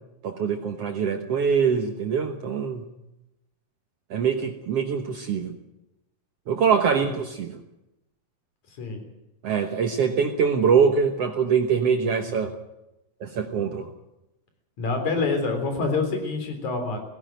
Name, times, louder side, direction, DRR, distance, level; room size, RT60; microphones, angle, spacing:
voice 1, 0.2-2.8 4.1-5.5 6.5-7.6 9.4-12.5 13.2-13.9, right 6 dB, 85° right, 5 dB, 1.3 m, -23 dB
voice 2, 14.8-17.0, left 3 dB, 50° left, 5 dB, 4.8 m, -26 dB
17.5 x 17.0 x 9.2 m, 0.92 s
omnidirectional pair, 4.5 m